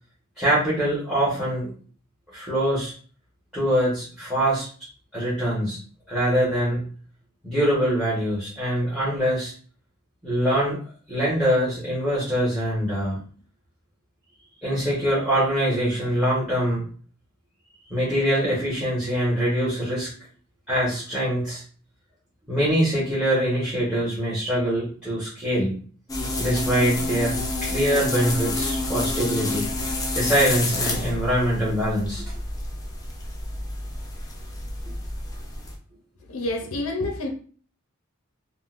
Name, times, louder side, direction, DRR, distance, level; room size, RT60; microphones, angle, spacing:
voice 1, 0.4-1.7 2.3-2.9 3.5-4.7 5.1-5.8 6.1-6.8 7.4-9.5 10.2-10.8 11.1-13.2 14.6-16.8 17.9-20.1 20.7-21.6 22.5-25.7 26.4-29.7 30.1-32.2, equal, 5° right, 1.1 m, -23 dB
sound 1, 26.1-35.8, left 2 dB, 15° left, 0.5 m, -29 dB
voice 2, 36.3-37.3, left 2 dB, 70° left, 0.6 m, -28 dB
3.7 x 2.2 x 2.4 m
head